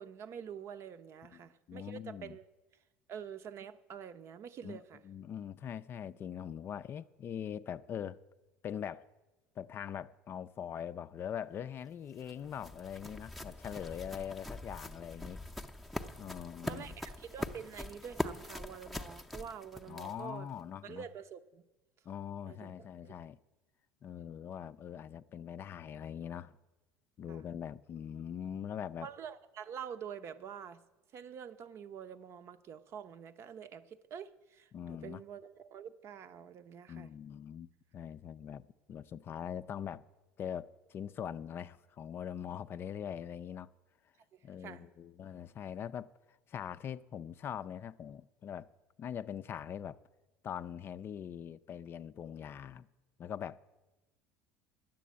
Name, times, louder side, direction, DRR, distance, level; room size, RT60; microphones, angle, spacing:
voice 1, 0.0-2.4 3.1-5.0 16.7-20.5 20.8-21.6 22.5-22.7 23.0-23.1 27.3-27.5 29.0-30.8 31.1-37.1 44.3-44.9, right 8 dB, 50° right, 0.7 m, -47 dB
voice 2, 1.3-2.4 4.6-4.8 5.0-8.2 8.6-9.1 9.6-15.4 16.2-17.0 19.9-21.0 22.1-23.4 24.0-26.6 27.2-29.1 34.7-35.2 36.9-40.0 40.4-43.7 44.4-48.7 49.0-50.0 50.4-52.9 53.2-53.6, left 9 dB, 40° left, 0.4 m, -42 dB
sound 1, 11.8-20.4, left 1 dB, ahead, 0.6 m, -43 dB
10.0 x 7.6 x 8.3 m
supercardioid pair, 95°, 6 cm